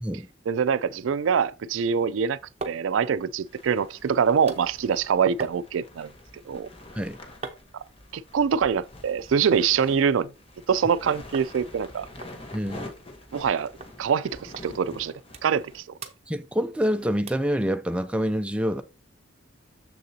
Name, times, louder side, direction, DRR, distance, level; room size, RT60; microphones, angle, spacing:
voice 1, 0.5-2.4 2.6-6.1 6.5-6.7 8.1-10.3 10.7-12.1 13.3-13.7 14.0-15.1 15.4-15.8, right 7 dB, 85° right, 0.4 m, -24 dB
sound 1, 1.8-1.9 2.7-15.8, left 2 dB, 30° left, 1.1 m, -46 dB
sound 2, 2.3-10.0 10.3-11.0 11.3-11.5 11.8-11.9 12.2-13.5 13.8-14.0 14.5-14.7 15.0-15.7 16.0-16.9 17.3-17.5 18.0-18.1, right 3 dB, 30° right, 0.7 m, -43 dB
voice 2, 12.5-12.9 16.3-18.8, equal, 5° right, 0.4 m, -26 dB
6.8 x 6.5 x 2.8 m
head